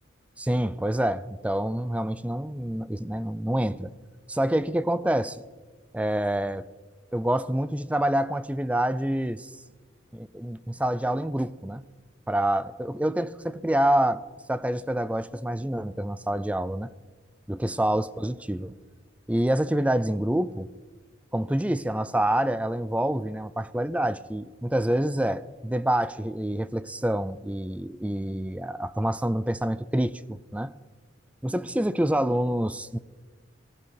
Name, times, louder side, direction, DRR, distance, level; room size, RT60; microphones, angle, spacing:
voice 1, 0.4-3.9 4.3-5.4 5.9-6.7 7.1-9.5 10.1-11.8 12.3-14.2 14.5-16.9 17.5-18.7 19.3-20.7 21.3-30.7 31.4-33.0, right 1 dB, 5° right, 16 dB, 0.4 m, -27 dB
18.0 x 14.5 x 4.8 m, 1.4 s
head